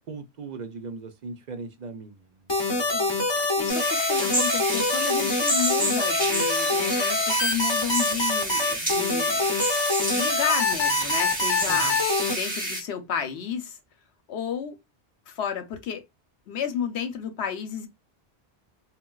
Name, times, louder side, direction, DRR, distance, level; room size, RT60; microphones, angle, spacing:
voice 1, 0.0-3.0 11.7-12.0, right 4 dB, 55° right, 0.5 m, -39 dB
sound 1, 2.5-12.3, left 2 dB, 30° left, 0.7 m, -25 dB
voice 2, 3.6-9.6 10.1-12.0 12.3-13.8 14.3-14.8 15.3-16.0 16.5-17.9, left 8 dB, 80° left, 0.9 m, -32 dB
sound 2, 3.7-12.8, right 1 dB, 10° right, 1.0 m, -30 dB
3.9 x 2.1 x 2.2 m
omnidirectional pair, 1.1 m